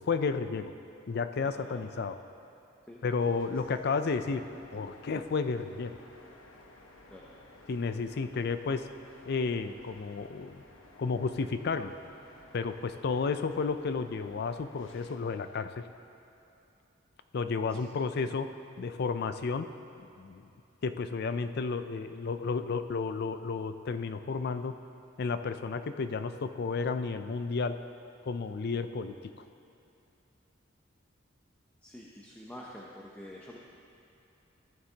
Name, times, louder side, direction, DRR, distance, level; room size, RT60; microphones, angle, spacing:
voice 1, 0.1-0.7 1.1-2.2 3.0-4.5 4.7-6.0 7.7-8.9 9.3-10.6 11.0-11.9 12.5-15.8 17.3-18.5 18.8-19.7 20.2-20.4 20.8-24.7 25.2-27.7 28.3-29.2, left 4 dB, 55° left, 10 dB, 0.4 m, -32 dB
voice 2, 1.4-1.9 2.9-3.0 7.1-7.3 17.7-17.8 31.8-33.6, equal, 5° left, -4 dB, 0.7 m, -47 dB
sound 1, 3.2-15.2, left 2 dB, 85° left, 1.0 m, -55 dB
14.5 x 9.7 x 2.9 m, 2.8 s
head